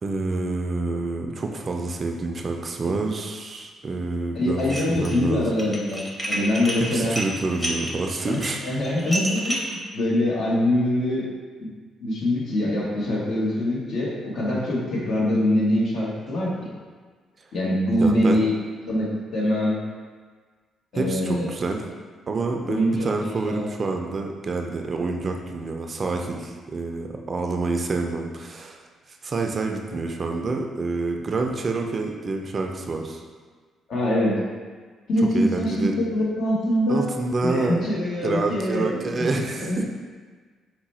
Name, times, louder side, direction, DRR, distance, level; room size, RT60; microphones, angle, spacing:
voice 1, 0.0-5.5 6.8-8.6 18.0-18.5 20.9-21.8 22.3-33.2 35.3-36.0 36.9-37.8 38.2-39.8, right 3 dB, 40° right, 2 dB, 0.4 m, -28 dB
voice 2, 4.3-7.1 8.3-9.6 9.9-11.2 11.6-11.7 12.0-16.7 17.5-18.5 18.9-19.8 20.9-21.5 22.7-23.6 33.9-34.4 35.1-35.7 36.1-37.1 37.4-39.8, left 1 dB, 65° left, -5 dB, 1.2 m, -24 dB
Dishes pots and pans, 4.6-5.2 5.5-9.8, equal, 15° left, 0.8 m, -30 dB
4.7 x 2.2 x 4.2 m, 1.5 s
cardioid pair, 90°, 0 cm